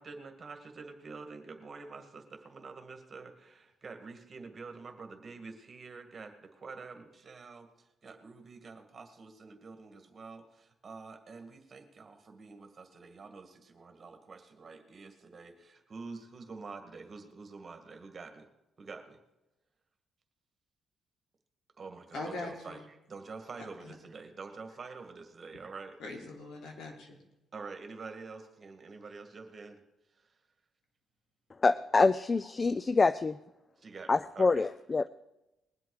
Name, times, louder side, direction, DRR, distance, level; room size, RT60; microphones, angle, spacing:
voice 1, 0.0-18.5 18.8-19.2 21.8-26.0 27.5-29.8 30.2-30.3 33.8-34.7, right 4 dB, 40° right, 2.0 m, -47 dB
voice 2, 22.1-22.8 23.8-23.9 26.0-27.2, left 2 dB, 75° left, 3.4 m, -41 dB
voice 3, 31.6-33.4 34.1-35.1, left 3 dB, 30° left, 0.4 m, -26 dB
21.0 x 8.0 x 4.9 m
cardioid pair, 90°, 0 cm